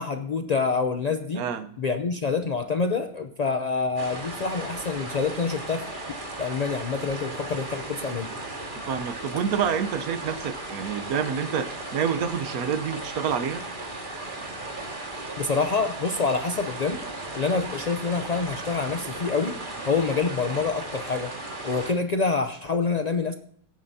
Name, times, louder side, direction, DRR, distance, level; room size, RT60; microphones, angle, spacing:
voice 1, 0.0-1.4 1.8-5.9 6.4-8.3 15.4-17.0 17.3-19.6 19.9-21.4 21.6-23.3, left 4 dB, 70° left, 7 dB, 0.4 m, -26 dB
voice 2, 1.3-1.7 8.9-13.6, right 7 dB, 75° right, 10 dB, 1.3 m, -28 dB
sound 1, 4.0-21.9, right 2 dB, 35° right, 2.0 m, -36 dB
17.5 x 9.0 x 2.7 m, 0.62 s
omnidirectional pair, 1.6 m